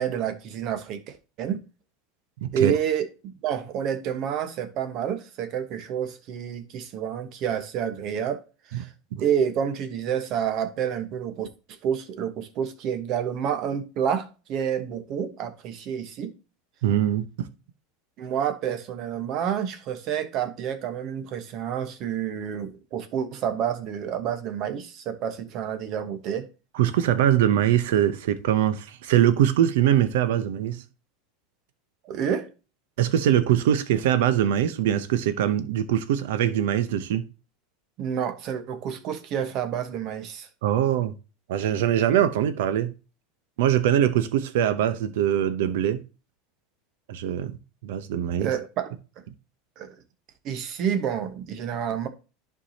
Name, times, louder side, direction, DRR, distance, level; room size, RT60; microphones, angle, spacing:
voice 1, 0.0-1.6 2.5-8.9 9.2-11.5 11.8-16.3 18.2-26.5 32.0-32.5 38.0-40.5 48.4-48.9 49.8-49.9 50.4-52.1, right 8 dB, 50° right, 1.1 m, -29 dB
voice 2, 2.4-2.7 8.7-8.8 9.1-9.2 16.8-17.5 26.7-30.8 33.0-37.2 40.6-41.1 41.5-42.9 43.6-46.0 47.1-47.6 47.8-48.5, right 11 dB, 75° right, 0.8 m, -22 dB
11.0 x 4.7 x 2.8 m
hypercardioid pair, 95°, 0 cm